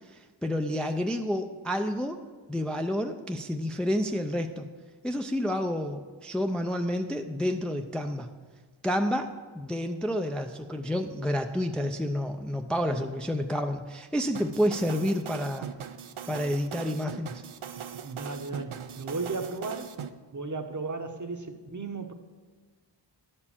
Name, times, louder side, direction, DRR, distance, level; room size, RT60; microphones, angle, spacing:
voice 1, 0.1-2.2 2.5-4.7 5.0-8.3 8.8-15.7 16.3-17.4, equal, ahead, 5 dB, 0.4 m, -29 dB
sound 1, 14.3-20.1, right 8 dB, 85° right, 0.6 m, -40 dB
voice 2, 18.0-19.9 20.3-22.1, right 3 dB, 40° right, 6 dB, 0.9 m, -35 dB
11.0 x 4.4 x 7.2 m, 1.4 s
wide cardioid pair, 60°, 48 cm